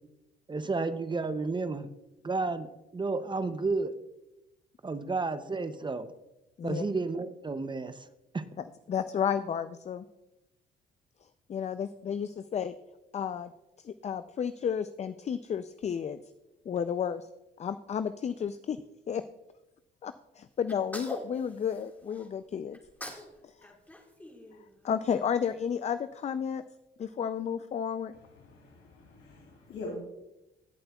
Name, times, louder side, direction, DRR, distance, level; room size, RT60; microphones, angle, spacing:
voice 1, 0.5-1.9 2.2-3.9 4.8-6.1 6.6-8.1 8.3-8.4, right 3 dB, 25° right, 11 dB, 0.6 m, -31 dB
voice 2, 8.6-10.0 11.5-12.7 13.1-13.5 13.8-16.2 16.7-17.3 17.6-18.8 19.1-19.2 20.0-22.8 23.4-23.7 24.8-26.6 27.0-28.1, left 7 dB, 35° left, 11 dB, 0.4 m, -32 dB
Sneeze, 20.7-22.3 22.7-23.3 23.6-25.1, equal, 10° left, 1.8 m, -43 dB
voice 3, 28.2-29.9, left 3 dB, 80° left, -3 dB, 2.7 m, -44 dB
16.0 x 7.7 x 2.3 m, 0.95 s
cardioid pair, 90°, 20 cm